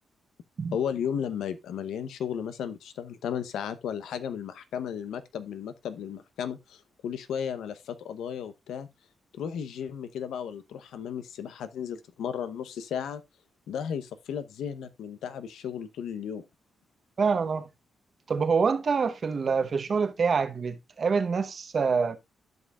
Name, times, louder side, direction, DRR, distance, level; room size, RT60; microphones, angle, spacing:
voice 1, 0.7-8.9 9.3-13.2 13.7-16.4, left 8 dB, 90° left, 0.8 m, -34 dB
voice 2, 17.2-17.7 18.3-22.2, right 5 dB, 45° right, 0.9 m, -26 dB
13.5 x 5.4 x 2.3 m
cardioid pair, 115°, 0 cm